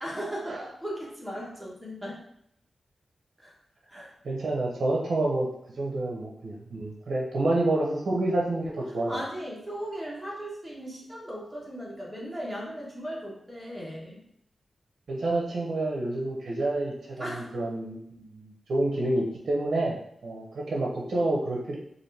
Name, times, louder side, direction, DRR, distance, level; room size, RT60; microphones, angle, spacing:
voice 1, 0.0-2.2 3.4-3.5 3.9-4.1 9.1-14.2 17.2-17.5, equal, 5° right, -5 dB, 1.3 m, -37 dB
voice 2, 3.9-5.5 5.8-9.2 15.1-21.8, right 2 dB, 65° right, -2 dB, 0.7 m, -28 dB
4.1 x 2.5 x 3.3 m, 0.74 s
wide cardioid pair, 105°, 0 cm